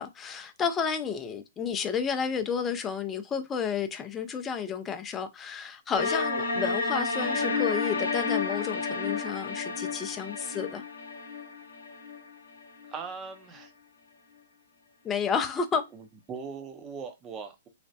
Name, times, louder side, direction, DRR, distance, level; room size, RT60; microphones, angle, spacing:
voice 1, 0.0-10.8 15.0-15.8, left 6 dB, 20° left, 0.5 m, -31 dB
sound 1, 6.0-12.9, left 4 dB, 80° left, 0.7 m, -31 dB
voice 2, 12.9-13.7 15.9-17.7, right 5 dB, 20° right, 0.7 m, -40 dB
3.2 x 2.1 x 2.7 m
figure-of-eight pair, 120°, 0 cm